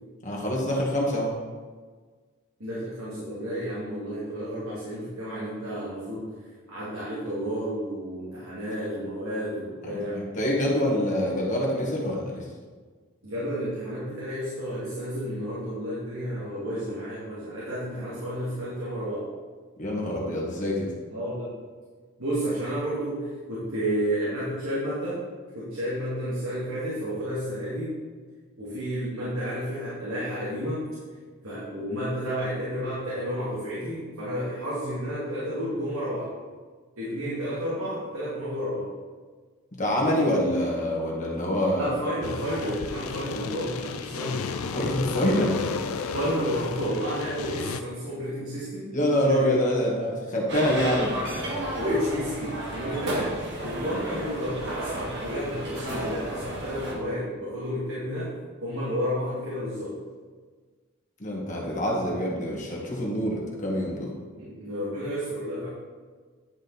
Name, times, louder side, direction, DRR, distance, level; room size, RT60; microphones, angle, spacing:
voice 1, 0.2-1.3 9.8-12.5 19.8-20.9 39.8-41.9 44.7-45.7 45.9-46.1 48.9-51.2 61.2-64.1, equal, 35° left, -3 dB, 1.7 m, -26 dB
voice 2, 2.6-6.3 6.7-10.2 13.2-19.3 21.1-21.5 22.2-25.2 25.5-28.0 28.6-30.8 31.4-36.3 37.0-38.9 41.8-44.4 46.1-48.9 49.2-49.5 51.8-53.3 53.6-58.3 58.6-60.0 64.4-65.7, equal, 85° right, -9 dB, 2.4 m, -31 dB
sound 1, 42.2-47.8, left 5 dB, 90° left, 0.5 m, -33 dB
sound 2, 50.5-56.9, right 1 dB, 55° right, 1.5 m, -33 dB
10.5 x 5.1 x 4.1 m, 1.5 s
head